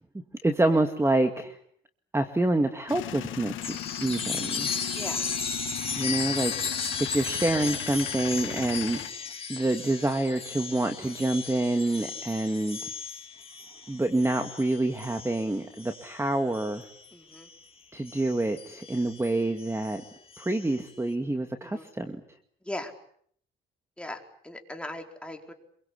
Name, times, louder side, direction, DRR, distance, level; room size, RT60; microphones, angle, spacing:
voice 1, 0.4-1.6 2.1-4.7 6.0-9.2 9.5-12.8 13.9-16.9 17.9-20.0 20.4-22.2, right 2 dB, 15° right, 7 dB, 2.2 m, -27 dB
Male speech man speaking / Vehicle / Engine starting, 2.9-9.1, left 13 dB, 85° left, 1.6 m, -38 dB
Chime, 3.6-17.6 18.1-20.9, left 5 dB, 30° left, 4.8 m, -36 dB
voice 2, 4.9-5.3 17.1-17.5 21.6-21.9 22.6-22.9 24.0-25.5, left 1 dB, 5° left, 3 dB, 4.7 m, -39 dB
26.5 x 23.5 x 8.5 m, 0.65 s
cardioid pair, 90°, 20 cm